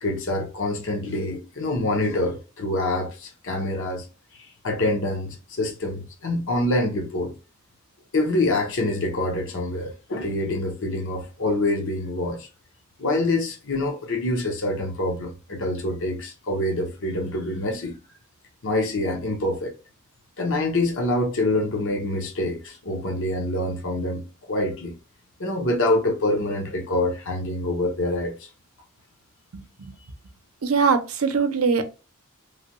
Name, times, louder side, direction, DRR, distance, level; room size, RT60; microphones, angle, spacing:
voice 1, 0.0-4.1 4.3-7.3 8.1-12.5 13.0-18.0 18.6-19.7 20.4-24.2 24.5-24.9 25.4-28.5, left 2 dB, 60° left, 0.8 m, -26 dB
voice 2, 30.6-31.8, right 5 dB, 70° right, 0.6 m, -21 dB
3.1 x 2.2 x 2.9 m
head